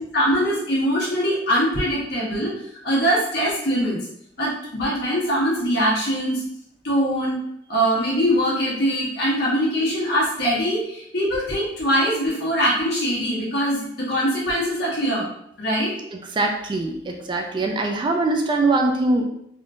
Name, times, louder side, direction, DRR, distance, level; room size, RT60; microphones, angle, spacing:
voice 1, 0.1-2.5 2.8-4.0 4.4-6.4 6.8-7.4 7.7-15.3 15.6-15.9, equal, 60° left, -6 dB, 1.3 m, -22 dB
voice 2, 16.1-19.2, right 2 dB, 25° right, 3 dB, 0.3 m, -22 dB
3.5 x 2.6 x 2.4 m, 0.73 s
head